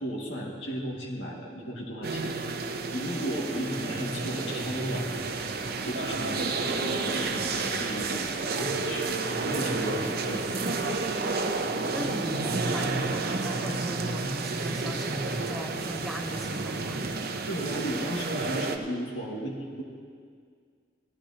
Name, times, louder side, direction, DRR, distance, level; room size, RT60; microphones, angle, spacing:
voice 1, 0.0-2.3 2.9-5.1 5.8-11.0 17.5-19.8, equal, 75° left, -3 dB, 2.1 m, -35 dB
sound 1, 2.0-18.8, right 3 dB, 55° right, 0.7 m, -31 dB
voice 2, 11.9-17.1, equal, ahead, 3 dB, 0.7 m, -38 dB
17.0 x 13.0 x 2.9 m, 2.1 s
head